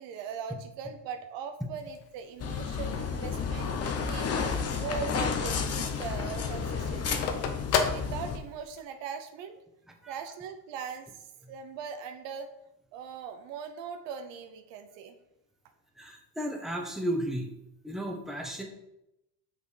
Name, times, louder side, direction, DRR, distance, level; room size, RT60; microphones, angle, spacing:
voice 1, 0.0-4.3 4.7-7.3 7.9-9.6 10.1-12.5 12.9-15.2, right 6 dB, 60° right, 7 dB, 1.0 m, -40 dB
Telephone, 1.8-5.2 5.6-5.7 5.9-8.8, left 6 dB, 90° left, 1.1 m, -33 dB
sound 1, 2.4-8.4, left 5 dB, 30° left, 1.0 m, -31 dB
voice 2, 16.0-17.5 17.8-18.6, right 1 dB, ahead, 2 dB, 1.2 m, -33 dB
6.0 x 5.8 x 5.1 m, 0.85 s
supercardioid pair, 100°, 50 cm